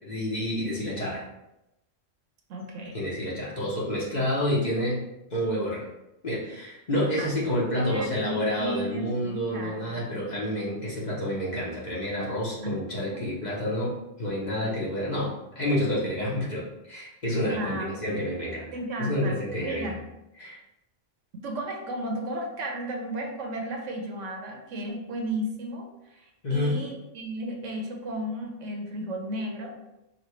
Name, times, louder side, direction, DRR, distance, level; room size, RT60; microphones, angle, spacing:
voice 1, 0.0-1.2 2.9-5.8 6.2-18.7 19.0-19.9 20.4-20.6 26.4-26.8, left 1 dB, 40° left, -6 dB, 1.0 m, -29 dB
voice 2, 2.5-3.0 7.2-7.3 7.7-10.1 12.6-12.8 13.1-13.2 17.5-18.3 18.7-19.4 19.6-20.0 21.4-29.7, right 1 dB, 75° right, 2 dB, 1.1 m, -34 dB
5.2 x 2.3 x 3.1 m, 0.91 s
omnidirectional pair, 1.3 m